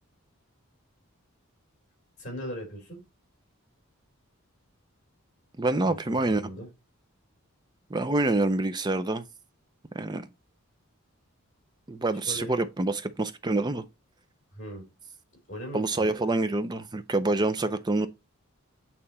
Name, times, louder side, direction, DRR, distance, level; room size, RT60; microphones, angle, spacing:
voice 1, 2.2-3.0 5.8-6.7 12.3-12.6 14.5-14.8 15.5-16.1, equal, 35° left, 3.4 m, -39 dB
voice 2, 5.6-6.4 7.9-9.2 9.9-10.3 11.9-13.8 15.7-18.1, right 2 dB, 20° right, 0.4 m, -26 dB
8.6 x 2.9 x 4.2 m
head